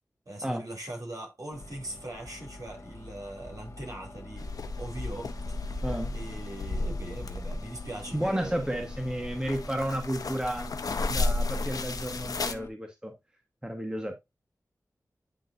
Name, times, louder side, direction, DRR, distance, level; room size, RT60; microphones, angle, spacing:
voice 1, 0.2-5.8 6.1-8.8, right 1 dB, 60° right, 3.3 m, -41 dB
sound 1, 1.5-12.7, left 2 dB, 50° left, 2.2 m, -45 dB
sound 2, 4.4-12.5, left 2 dB, 70° left, 0.7 m, -34 dB
voice 2, 5.8-6.1 8.1-10.7 11.1-13.1 13.6-14.1, right 1 dB, 10° right, 1.6 m, -32 dB
10.0 x 3.6 x 2.8 m
cardioid pair, 45°, 6 cm